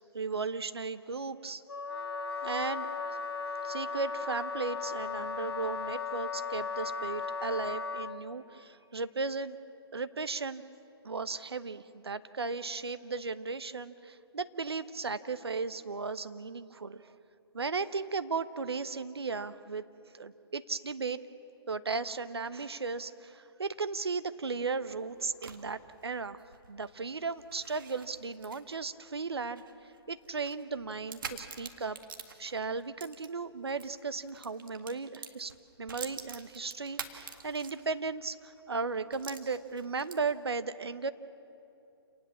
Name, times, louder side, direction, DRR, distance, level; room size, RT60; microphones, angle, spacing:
voice 1, 0.0-1.6 2.4-3.2 3.6-9.6 9.9-10.6 11.0-17.1 17.5-19.8 20.1-21.2 21.7-26.4 26.7-29.6 30.1-32.0 32.4-35.5 35.8-41.1, right 4 dB, 70° right, 12 dB, 1.0 m, -36 dB
Wind instrument woodwind instrument, 1.7-8.2, left 5 dB, 70° left, 1.2 m, -36 dB
sound 1, 24.7-33.9 34.2-38.1 38.5-38.6 39.1-40.4, right 6 dB, 55° right, 1.9 m, -47 dB
28.0 x 19.0 x 7.1 m, 2.8 s
figure-of-eight pair, 135°, 14 cm